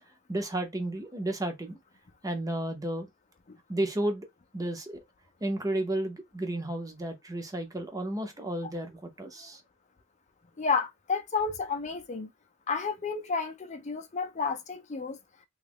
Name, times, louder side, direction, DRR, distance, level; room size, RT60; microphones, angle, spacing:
voice 1, 0.3-1.8 2.2-3.1 3.7-4.3 4.5-5.0 5.4-9.6, right 1 dB, 20° right, 0.7 m, -32 dB
voice 2, 10.6-12.3 12.7-15.2, left 5 dB, 35° left, 0.5 m, -31 dB
2.9 x 2.4 x 3.4 m
head